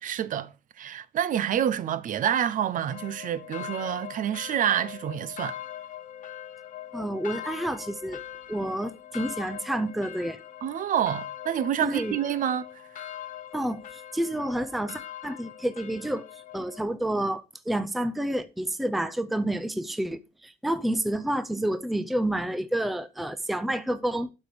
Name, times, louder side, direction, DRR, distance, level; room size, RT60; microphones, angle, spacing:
voice 1, 0.0-0.5 0.8-5.6 10.6-12.7, right 10 dB, 45° right, 0.6 m, -27 dB
sound 1, 2.9-16.8, left 11 dB, 45° left, 0.9 m, -42 dB
voice 2, 6.9-8.2 8.5-10.4 11.8-12.2 13.5-16.3 16.5-24.3, right 1 dB, ahead, 0.5 m, -29 dB
12.0 x 5.2 x 4.8 m
cardioid pair, 180°, 18 cm